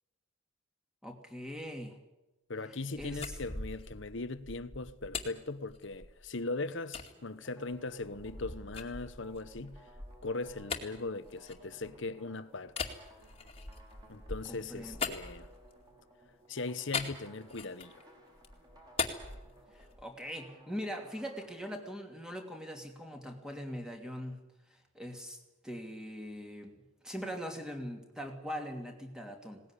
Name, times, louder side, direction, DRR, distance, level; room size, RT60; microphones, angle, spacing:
voice 1, 1.0-2.0 2.9-3.4 14.5-15.0 19.7-24.4 24.7-26.8 27.0-29.6, equal, 5° right, 2.7 m, -41 dB
voice 2, 2.5-9.8 10.2-12.7 14.1-15.5 16.5-17.9, left 3 dB, 60° left, 1.0 m, -39 dB
sound 1, 2.9-6.3 6.9-7.1 7.7-12.1 12.7-15.9 16.9-18.0 18.4-20.1, left 5 dB, 25° left, 2.3 m, -41 dB
sound 2, 7.0-21.7, right 1 dB, 20° right, 5.4 m, -60 dB
20.5 x 19.0 x 10.0 m
head